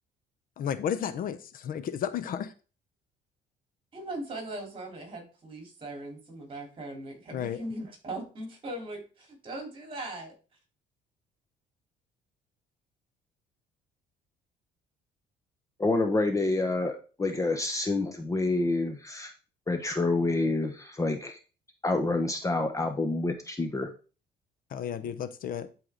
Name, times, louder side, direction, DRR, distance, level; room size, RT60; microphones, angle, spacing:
voice 1, 0.6-1.4 1.7-2.5 7.3-7.6 24.7-25.7, left 8 dB, 55° left, 12 dB, 0.8 m, -32 dB
voice 2, 3.9-9.0 9.4-10.3 25.0-25.2, right 1 dB, 30° right, 1 dB, 4.0 m, -39 dB
voice 3, 15.8-16.9 17.2-19.3 19.7-20.7 21.0-21.3 21.8-23.9, left 2 dB, 20° left, 5 dB, 1.0 m, -27 dB
11.0 x 4.8 x 3.9 m, 0.35 s
cardioid pair, 110°, 17 cm